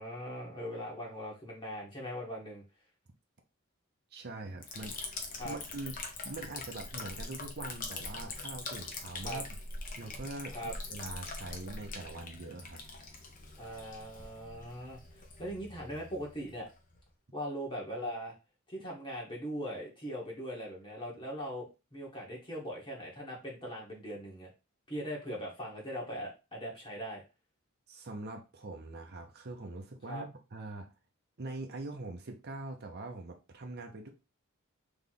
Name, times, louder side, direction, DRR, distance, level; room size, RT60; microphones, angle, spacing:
voice 1, 0.0-2.6 5.4-5.6 9.2-9.4 10.5-10.7 13.6-15.0 15.4-16.7 17.3-18.3 18.7-24.5 24.9-27.2 30.1-30.2, equal, 25° left, 1.3 m, -40 dB
voice 2, 4.1-9.4 10.0-12.8 27.9-30.9 31.4-34.1, right 2 dB, 50° right, 0.8 m, -43 dB
Liquid, 4.6-17.1, left 3 dB, 40° left, 0.9 m, -43 dB
3.5 x 3.1 x 4.0 m
head